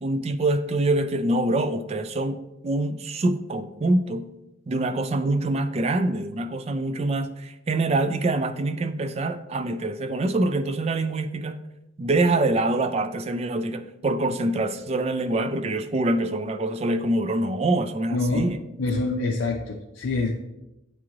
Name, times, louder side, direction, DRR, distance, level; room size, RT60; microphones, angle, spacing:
voice 1, 0.0-4.3 4.7-11.6 12.0-18.6, right 2 dB, 30° right, 9 dB, 0.3 m, -25 dB
voice 2, 18.1-18.4 18.8-20.3, left 3 dB, 90° left, 1 dB, 0.5 m, -25 dB
8.5 x 3.0 x 3.7 m, 0.92 s
head